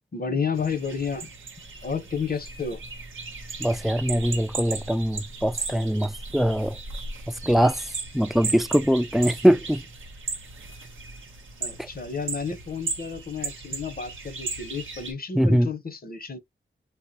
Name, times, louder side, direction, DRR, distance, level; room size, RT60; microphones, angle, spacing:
voice 1, 0.1-1.3 1.8-2.8 11.6-16.4, left 5 dB, 50° left, 0.7 m, -31 dB
sound 1, 0.5-15.1, right 4 dB, 85° right, 0.7 m, -36 dB
voice 2, 3.6-6.8 7.3-7.9 8.1-9.8 11.8-11.9 15.3-15.7, equal, ahead, 0.3 m, -22 dB
3.4 x 2.0 x 2.7 m
cardioid pair, 50°, 20 cm